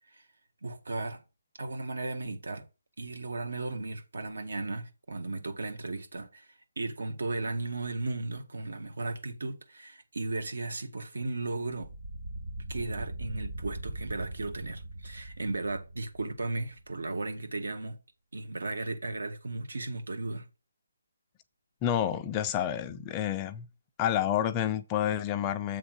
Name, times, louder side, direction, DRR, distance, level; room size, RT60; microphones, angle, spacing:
voice 1, 0.6-1.2 1.6-2.6 3.0-11.9 12.7-18.0 18.3-20.5, right 2 dB, 80° right, 1.7 m, -35 dB
sound 1, 11.8-17.0, right 1 dB, 60° right, 1.9 m, -41 dB
voice 2, 21.8-23.7 24.0-25.8, left 10 dB, 15° left, 0.3 m, -29 dB
7.9 x 3.5 x 6.2 m
hypercardioid pair, 175°, 0 cm